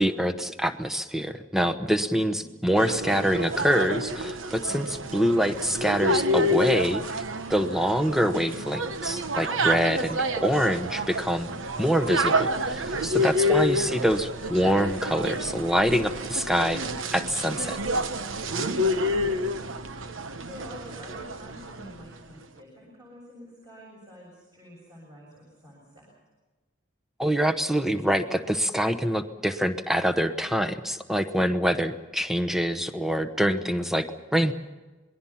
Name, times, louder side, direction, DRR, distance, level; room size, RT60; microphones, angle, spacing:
voice 1, 0.0-7.2 7.5-16.8 17.1-17.8 27.2-34.1 34.3-34.5, equal, ahead, 9 dB, 1.0 m, -25 dB
voice 2, 1.9-2.5 13.1-13.7 18.8-19.7 20.4-26.1, equal, 20° right, -3 dB, 6.7 m, -47 dB
sound 1, 2.7-22.0, equal, 75° right, 1.1 m, -29 dB
26.5 x 21.0 x 5.8 m, 1.2 s
head